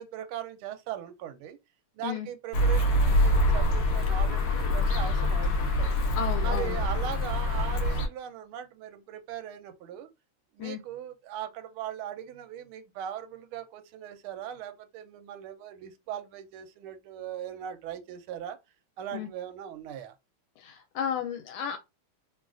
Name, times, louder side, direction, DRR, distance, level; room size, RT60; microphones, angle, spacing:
voice 1, 0.0-1.6 1.9-5.9 6.4-10.1 10.5-18.6 19.0-20.1, right 10 dB, 80° right, 1.4 m, -39 dB
sound 1, 2.5-8.1, left 1 dB, 70° left, 0.9 m, -25 dB
voice 2, 6.1-6.8 10.6-10.8 19.1-19.3 20.6-21.8, left 8 dB, 85° left, 1.5 m, -33 dB
3.5 x 2.3 x 2.4 m
omnidirectional pair, 2.4 m